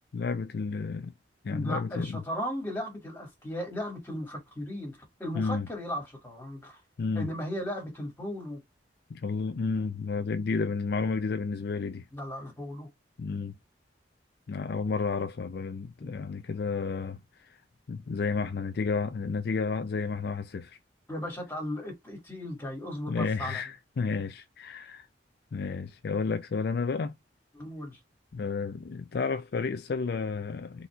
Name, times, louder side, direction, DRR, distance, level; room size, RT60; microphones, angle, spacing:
voice 1, 0.1-1.1 1.4-2.2 5.3-5.7 7.0-7.3 9.1-12.0 13.2-13.5 14.5-17.2 17.9-20.8 23.1-25.1 25.5-27.1 28.3-30.9, left 4 dB, 60° left, 0.4 m, -31 dB
voice 2, 1.5-6.8 7.1-8.6 12.1-12.9 16.0-16.3 21.1-23.6 27.5-28.0, equal, 10° left, 2.2 m, -36 dB
4.1 x 4.1 x 2.3 m
head